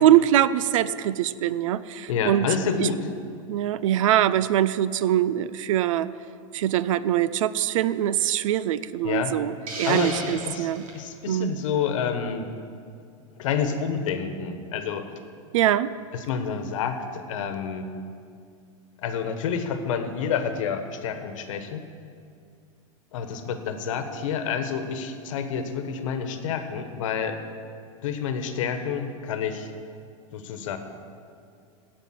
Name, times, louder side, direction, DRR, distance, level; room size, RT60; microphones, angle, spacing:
voice 1, 0.0-2.5 2.7-2.9 3.5-6.1 6.5-10.8 11.3-11.6 15.5-15.9, right 12 dB, 70° right, 17 dB, 0.5 m, -23 dB
voice 2, 2.1-3.1 9.0-9.3 9.8-12.5 13.4-15.0 16.1-17.9 19.0-21.8 23.1-27.4 28.0-29.7 30.3-30.8, left 7 dB, 70° left, 8 dB, 1.3 m, -29 dB
Hiss, 9.7-11.0, right 2 dB, 85° right, 2.2 m, -35 dB
15.5 x 5.3 x 7.3 m, 2.3 s
hypercardioid pair, 115°, 17 cm